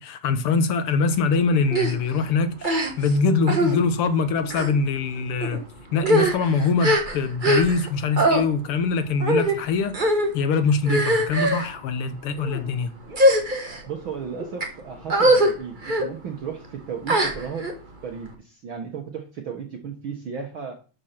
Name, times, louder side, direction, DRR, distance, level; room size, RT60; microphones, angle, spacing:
voice 1, 0.0-5.6 5.9-12.9, left 4 dB, 65° left, 1.5 m, -23 dB
sound 1, 1.7-1.9 2.6-3.1 3.5-3.7 4.4-4.7 5.4-5.6 6.0-7.9 8.2-8.4 9.2-9.6 9.9-10.3 10.8-11.7 12.4-12.6 13.1-13.8 14.4-14.7 15.1-15.5 15.8-16.1 17.1-17.7, right 1 dB, 25° right, 1.1 m, -21 dB
voice 2, 13.9-17.7 18.0-20.7, right 7 dB, 50° right, 1.7 m, -34 dB
12.0 x 5.5 x 5.9 m
omnidirectional pair, 3.4 m